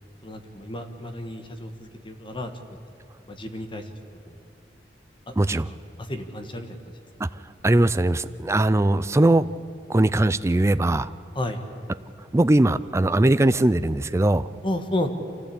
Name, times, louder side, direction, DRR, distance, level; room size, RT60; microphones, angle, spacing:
voice 1, 0.2-2.5 3.3-3.9 4.3-4.4 5.3-6.8 11.3-11.6 14.6-15.1, left 1 dB, 30° left, 6 dB, 1.5 m, -32 dB
voice 2, 5.4-5.7 7.2-7.3 7.6-9.5 9.9-11.1 12.3-14.5, right 1 dB, 15° right, 13 dB, 0.4 m, -20 dB
25.5 x 15.5 x 8.6 m, 2.8 s
head